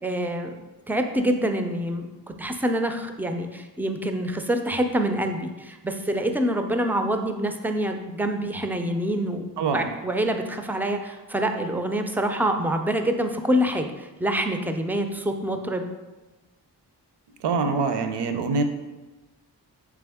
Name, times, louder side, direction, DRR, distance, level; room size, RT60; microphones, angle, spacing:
voice 1, 0.0-0.6 0.9-15.9, right 1 dB, 5° right, 5 dB, 0.3 m, -26 dB
voice 2, 9.6-9.9 17.4-18.6, right 4 dB, 70° right, 7 dB, 0.5 m, -24 dB
3.6 x 3.4 x 3.4 m, 1.1 s
cardioid pair, 45°, 43 cm